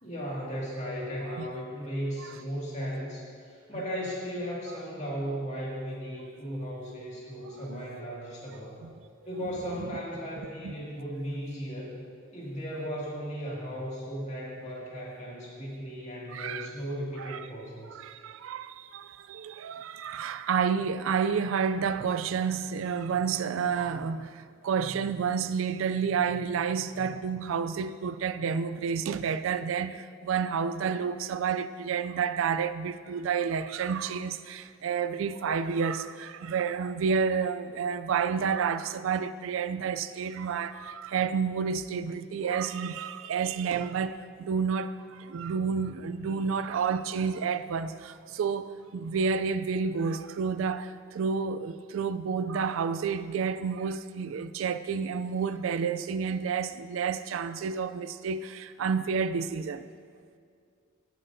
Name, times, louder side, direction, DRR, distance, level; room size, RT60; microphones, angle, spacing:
voice 1, 0.0-8.8 9.2-12.0 12.3-18.0, equal, 35° left, 2.1 m, -36 dB
voice 2, 7.3-8.1 8.8-8.9 10.6-10.7 16.3-16.7 17.2-17.4 17.9-59.9, right 6 dB, 75° right, 0.4 m, -30 dB
17.0 x 7.7 x 2.7 m
head